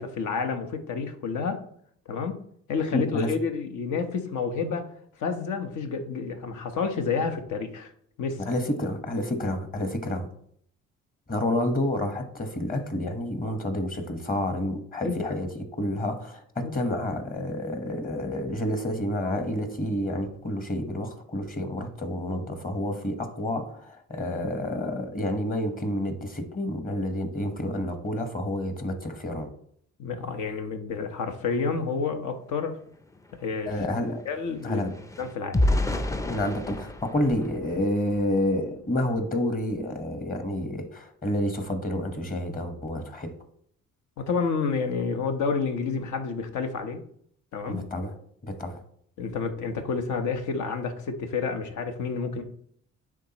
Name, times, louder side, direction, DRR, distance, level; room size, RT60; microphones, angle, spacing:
voice 1, 0.0-1.6 2.1-2.4 2.7-4.8 5.2-7.9 8.2-8.4 15.0-15.2 16.6-16.7 30.0-32.8 33.4-33.7 34.2-34.8 35.2-35.7 44.2-47.0 47.5-47.9 49.2-52.4, left 5 dB, 75° left, 1.0 m, -29 dB
voice 2, 2.9-3.3 8.4-10.3 11.3-29.5 33.7-34.2 34.6-34.9 36.2-43.3 47.6-48.2 48.4-48.8, left 1 dB, 30° left, 1.2 m, -29 dB
sound 1, 32.6-32.7 33.0-38.4 39.0-39.2 39.5-39.8, left 1 dB, 10° left, 0.4 m, -31 dB
9.9 x 3.7 x 2.9 m
cardioid pair, 90°, 30 cm